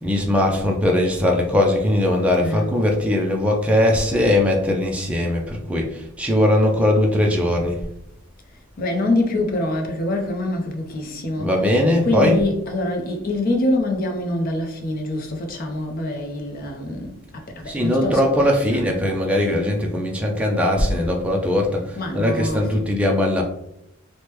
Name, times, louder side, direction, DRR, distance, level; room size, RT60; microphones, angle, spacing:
voice 1, 0.0-7.8 11.4-12.4 17.7-23.4, left 1 dB, 5° right, 0.4 m, -20 dB
voice 2, 2.4-2.8 8.8-18.9 22.0-22.9, left 2 dB, 45° left, 0.6 m, -25 dB
3.2 x 2.1 x 2.9 m
head